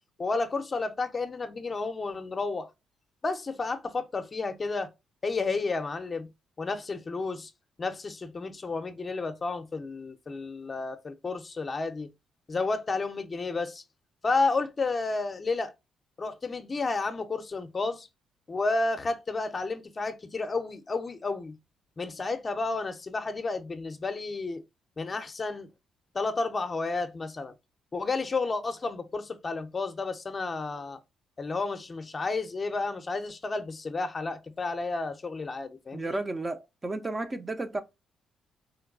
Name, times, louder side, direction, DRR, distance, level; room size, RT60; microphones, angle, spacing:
voice 1, 0.2-2.7 3.2-4.9 5.2-6.3 6.6-7.5 7.8-12.1 12.5-13.8 14.2-15.7 16.2-18.1 18.5-21.6 22.0-24.6 25.0-25.7 26.1-27.5 27.9-31.0 31.4-36.2, left 3 dB, 30° left, 0.5 m, -31 dB
voice 2, 35.9-37.8, right 2 dB, 25° right, 0.4 m, -33 dB
3.8 x 2.2 x 2.3 m
cardioid pair, 90°, 0 cm